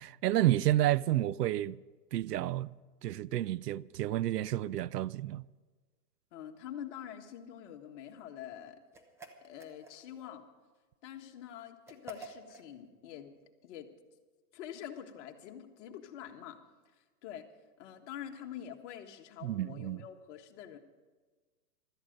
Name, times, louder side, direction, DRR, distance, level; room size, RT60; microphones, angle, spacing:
voice 1, 0.0-1.8 2.1-2.7 3.0-5.5 19.4-20.0, right 14 dB, 80° right, 0.6 m, -30 dB
voice 2, 6.3-8.8 9.4-10.4 11.0-13.3 13.6-13.9 14.5-16.6 17.2-17.4 17.8-20.8, left 10 dB, 45° left, 1.6 m, -46 dB
sound 1, 8.9-10.3 11.9-12.7, right 3 dB, 5° right, 0.8 m, -50 dB
16.0 x 13.0 x 5.3 m
hypercardioid pair, 135°, 48 cm